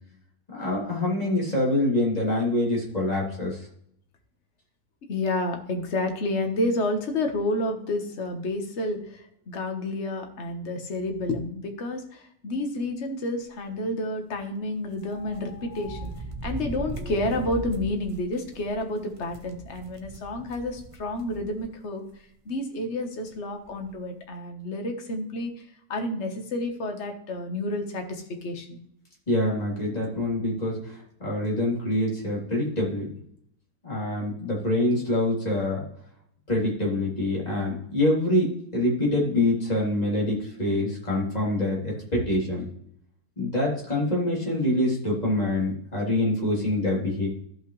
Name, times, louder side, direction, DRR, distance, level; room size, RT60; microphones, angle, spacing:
voice 1, 0.5-3.6 29.3-30.9 31.2-33.1 33.8-35.8 36.5-42.7 43.4-47.3, left 1 dB, 20° left, -4 dB, 3.2 m, -25 dB
voice 2, 5.1-22.0 22.4-25.5 25.9-28.8, left 1 dB, 40° left, 4 dB, 1.5 m, -30 dB
sound 1, 15.0-21.7 22.1-22.2 23.3-23.4 23.6-23.9, right 3 dB, 30° right, 0.6 m, -39 dB
14.5 x 5.7 x 3.2 m, 0.69 s
omnidirectional pair, 2.0 m